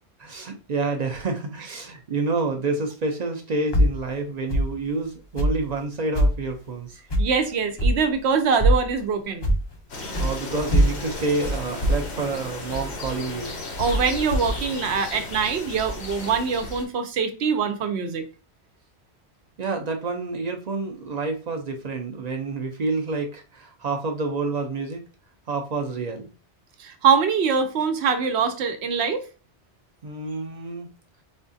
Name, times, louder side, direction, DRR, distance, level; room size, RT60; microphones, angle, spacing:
voice 1, 0.2-7.0 10.2-13.6 19.6-25.0 25.5-26.3 30.0-30.9, right 3 dB, 50° right, 0.5 m, -28 dB
sound 1, 3.7-4.0 4.5-4.7 5.3-5.6 6.1-6.4 7.1-7.3 7.8-8.0 8.6-8.9 9.4-9.7 10.1-10.3 10.7-13.5 13.9-14.6, equal, 35° left, 0.4 m, -22 dB
voice 2, 7.2-9.5 13.8-18.2 26.8-29.2, right 6 dB, 75° right, 0.9 m, -23 dB
sound 2, 9.9-16.8, left 2 dB, 75° left, 1.1 m, -34 dB
4.2 x 2.3 x 2.6 m
omnidirectional pair, 1.1 m